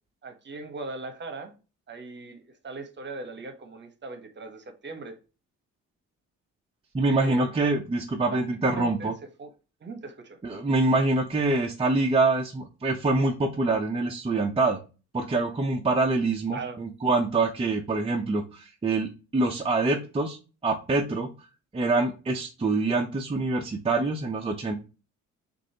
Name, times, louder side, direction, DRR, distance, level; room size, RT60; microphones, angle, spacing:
voice 1, 0.2-1.5 1.9-5.2 7.1-7.4 8.3-9.1 9.4-9.5 9.8-10.4 16.5-16.8, right 3 dB, 35° right, 1.1 m, -39 dB
voice 2, 6.9-9.1 10.4-14.8 15.1-20.4 20.6-21.3 21.7-24.7, right 3 dB, 20° right, 0.7 m, -25 dB
6.1 x 2.7 x 2.8 m
cardioid pair, 90°, 30 cm